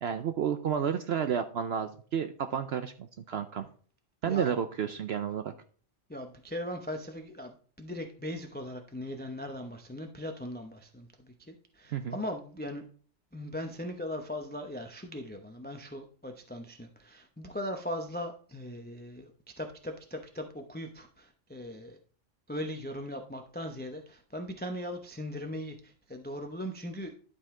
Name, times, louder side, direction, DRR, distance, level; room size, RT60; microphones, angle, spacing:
voice 1, 0.0-3.7 4.2-5.5 11.9-12.2, right 8 dB, 60° right, 9 dB, 0.8 m, -31 dB
voice 2, 6.1-12.8 13.3-19.3 19.6-22.0 22.5-27.1, left 1 dB, 10° left, 4 dB, 0.7 m, -39 dB
12.0 x 5.4 x 3.7 m, 0.43 s
omnidirectional pair, 1.3 m